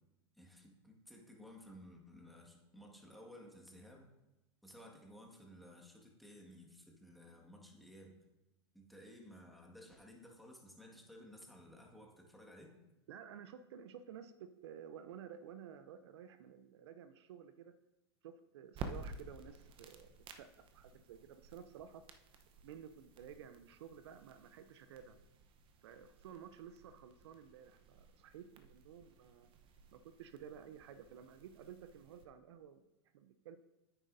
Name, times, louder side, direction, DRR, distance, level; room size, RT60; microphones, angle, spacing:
voice 1, 0.4-4.1 4.6-8.2 8.7-12.8, equal, ahead, 0 dB, 1.7 m, -56 dB
voice 2, 13.1-17.7 18.2-22.0 22.6-25.2 25.8-29.5 29.9-32.8 33.1-33.6, right 8 dB, 70° right, 11 dB, 0.6 m, -53 dB
sound 1, 18.7-32.2, right 4 dB, 35° right, 0.9 m, -54 dB
9.9 x 9.0 x 2.7 m, 1.0 s
hypercardioid pair, 100°, 15 cm